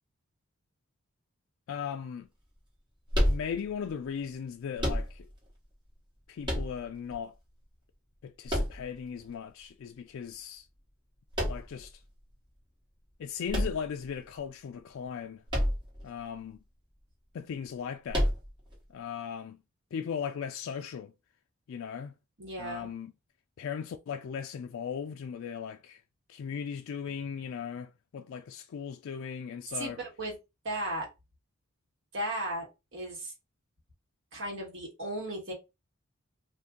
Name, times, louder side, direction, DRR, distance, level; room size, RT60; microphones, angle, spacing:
voice 1, 1.7-2.3 3.3-5.3 6.3-7.3 8.2-10.7 11.5-11.9 13.2-15.4 16.0-16.6 17.3-18.3 18.9-19.6 19.9-21.1 21.7-22.1 22.6-23.1 23.6-26.0 26.3-30.0, left 7 dB, 65° left, 0.3 m, -37 dB
sound 1, 3.1-3.9 4.8-5.5 6.4-7.2 8.5-9.3 11.3-11.9 13.5-14.4 15.5-16.1 16.3-16.4 18.1-18.7, equal, 20° right, 1.3 m, -29 dB
voice 2, 22.4-22.9 29.7-30.4 30.6-31.1 32.1-32.7 32.9-33.3 34.3-35.5, right 1 dB, 65° right, 1.5 m, -35 dB
2.6 x 2.5 x 3.6 m
head